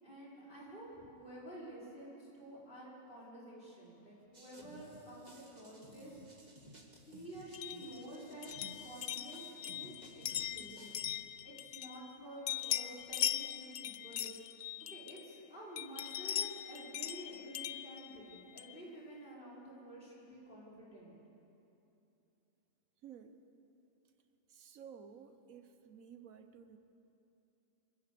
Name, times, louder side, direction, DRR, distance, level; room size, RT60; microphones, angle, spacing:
voice 1, 0.0-6.2 7.1-8.5 8.8-11.0 11.4-14.5 14.9-21.2, right 1 dB, 40° left, -7 dB, 5.7 m, -50 dB
sound 1, 4.3-11.2, right 1 dB, 30° right, 2.0 m, -56 dB
sound 2, 7.5-12.2 12.5-15.4 15.8-18.8, left 11 dB, 60° left, 0.7 m, -40 dB
voice 2, 23.0-23.4 24.5-26.8, right 7 dB, 80° right, 9 dB, 1.4 m, -54 dB
25.0 x 17.0 x 6.9 m, 2.9 s
omnidirectional pair, 1.4 m